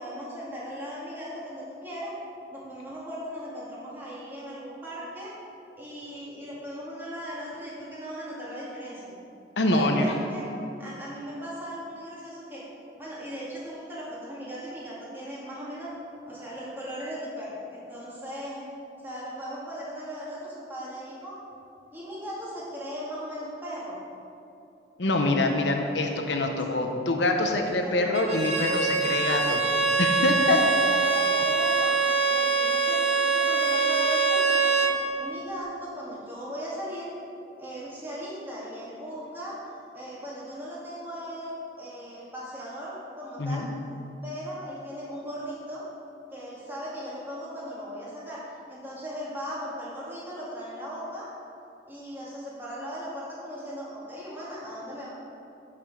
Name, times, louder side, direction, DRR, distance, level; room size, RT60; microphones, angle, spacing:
voice 1, 0.0-2.1 2.5-5.4 5.8-9.1 9.7-12.6 13.0-15.9 16.3-18.7 19.0-21.4 21.9-24.0 27.8-28.1 30.3-37.1 37.6-39.6 39.9-43.7 44.2-45.9 46.3-48.4 48.7-51.3 51.9-55.1, equal, 10° right, -7 dB, 2.0 m, -38 dB
voice 2, 9.6-10.1 25.0-30.6 43.4-43.7, left 2 dB, 80° left, 3 dB, 0.9 m, -25 dB
Bowed string instrument, 28.1-35.0, right 4 dB, 35° right, 1.0 m, -24 dB
7.8 x 6.1 x 6.3 m, 2.7 s
head